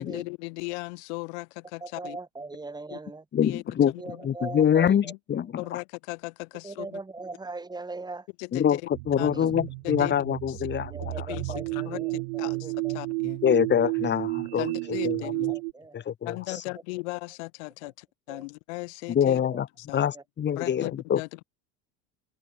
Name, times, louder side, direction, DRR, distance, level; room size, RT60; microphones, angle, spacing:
voice 1, 0.0-2.2 2.9-3.0 3.4-4.2 5.0-5.2 5.6-7.0 8.4-8.8 9.2-9.5 9.8-10.1 10.5-10.6 11.3-13.4 14.6-15.5 16.2-19.4 19.8-20.1 20.6-21.4, left 29 dB, 80° left, 1.6 m, -37 dB
voice 2, 1.8-3.2 4.0-5.1 6.6-8.3 9.3-9.5 10.9-13.0 15.2-16.0 16.5-16.6 17.8-17.9 18.3-18.5 19.5-19.6 20.1-20.2 20.7-20.8, right 3 dB, 10° right, 2.7 m, -40 dB
voice 3, 3.3-3.9 4.2-5.6 8.5-8.8 9.1-11.3 13.4-14.7 15.0-15.5 15.9-16.4 19.1-19.7 19.9-21.2, left 9 dB, 30° left, 2.6 m, -25 dB
sound 1, 8.9-15.7, right 27 dB, 80° right, 2.2 m, -32 dB
open air
supercardioid pair, 125°, 34 cm